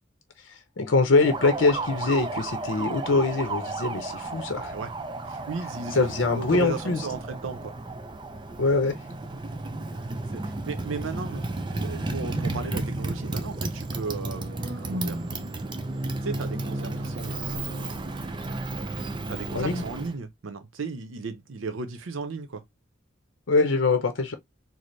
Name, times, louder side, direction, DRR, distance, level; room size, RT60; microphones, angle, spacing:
voice 1, 0.8-4.7 5.9-7.0 8.6-9.0 19.5-19.8 23.5-24.3, left 3 dB, 75° left, 0.7 m, -23 dB
Motorcycle, 1.2-20.2, right 2 dB, 25° right, 0.4 m, -33 dB
voice 2, 4.6-4.9 5.3-7.7 10.3-15.2 16.2-18.1 19.3-22.6, right 4 dB, 90° right, 0.6 m, -35 dB
sound 1, 11.3-12.8 14.1-15.6 16.5-17.1, right 1 dB, 60° right, 0.7 m, -38 dB
4.1 x 2.0 x 3.1 m
head